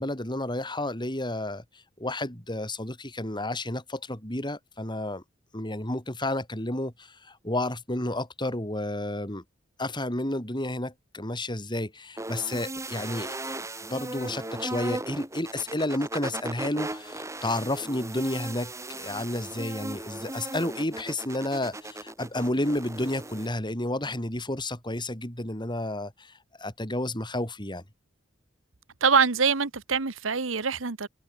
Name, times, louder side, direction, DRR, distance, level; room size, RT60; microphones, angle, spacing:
voice 1, 0.0-1.6 2.0-5.2 5.5-9.4 9.8-27.8, left 1 dB, 25° left, 7.5 m, -31 dB
sound 1, 12.2-23.5, right 2 dB, 15° right, 3.4 m, -37 dB
voice 2, 29.0-31.1, right 5 dB, 75° right, 1.3 m, -24 dB
head